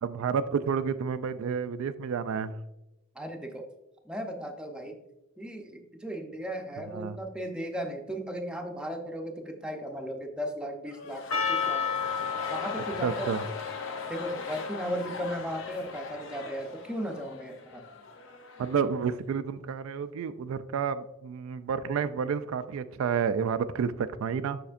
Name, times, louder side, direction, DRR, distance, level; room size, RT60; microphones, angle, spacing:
voice 1, 0.0-2.6 6.9-7.2 13.0-13.4 18.6-24.6, right 6 dB, 75° right, 12 dB, 0.3 m, -30 dB
voice 2, 3.1-3.7 4.0-5.0 5.4-11.8 12.5-13.3 14.1-17.8, equal, 5° right, 2 dB, 0.6 m, -36 dB
sound 1, 10.9-19.0 19.2-19.3, left 4 dB, 60° left, 0.6 m, -41 dB
Percussion, 11.3-16.3, left 6 dB, 80° left, 1.0 m, -34 dB
6.8 x 5.8 x 2.5 m, 0.95 s
head